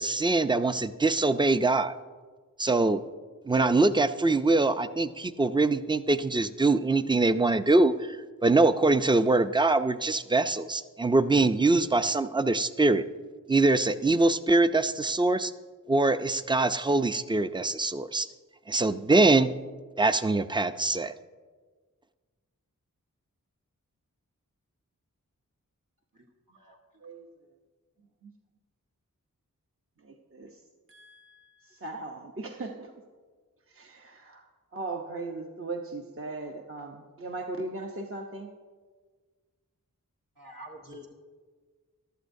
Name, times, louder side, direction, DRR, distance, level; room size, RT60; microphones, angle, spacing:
voice 1, 0.0-2.0 2.6-3.0 3.5-13.0 13.5-15.5 15.9-18.3 18.7-19.5 20.0-21.1, right 2 dB, 15° right, 12 dB, 0.4 m, -23 dB
voice 2, 30.0-30.6 30.9-32.9 33.7-34.4 34.7-38.5, right 2 dB, 40° right, 2 dB, 0.8 m, -38 dB
voice 3, 40.4-41.1, equal, 80° right, -2 dB, 1.5 m, -46 dB
14.5 x 12.0 x 2.6 m, 1.5 s
wide cardioid pair, 65°, 33 cm